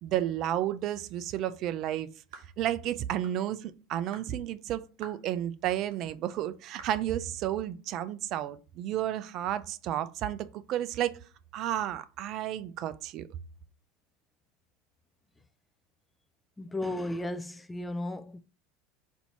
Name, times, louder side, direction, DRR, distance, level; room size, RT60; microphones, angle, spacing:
voice 1, 0.0-2.1 2.6-11.2 11.5-13.3, right 12 dB, 50° right, 0.4 m, -32 dB
sound 1, 2.3-2.6 3.2-3.4 4.1-4.3 5.0-5.3 5.9-6.0 6.8-7.0, right 6 dB, 80° right, 1.0 m, -48 dB
voice 2, 16.6-18.4, left 1 dB, 10° left, 0.4 m, -34 dB
4.3 x 2.7 x 4.3 m
supercardioid pair, 105°, 0 cm